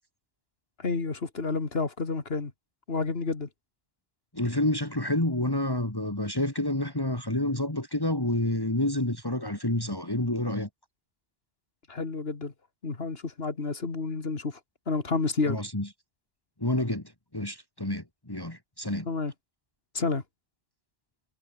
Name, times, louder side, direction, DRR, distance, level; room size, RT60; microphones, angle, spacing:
voice 1, 0.8-2.5 2.9-3.5 11.9-12.5 12.8-14.6 14.9-15.6 19.0-19.3 19.9-20.2, left 4 dB, 75° left, 2.5 m, -30 dB
voice 2, 4.3-10.7 15.5-15.9 16.6-17.0 17.3-19.1, left 1 dB, 20° left, 2.8 m, -28 dB
omnidirectional pair, 1.0 m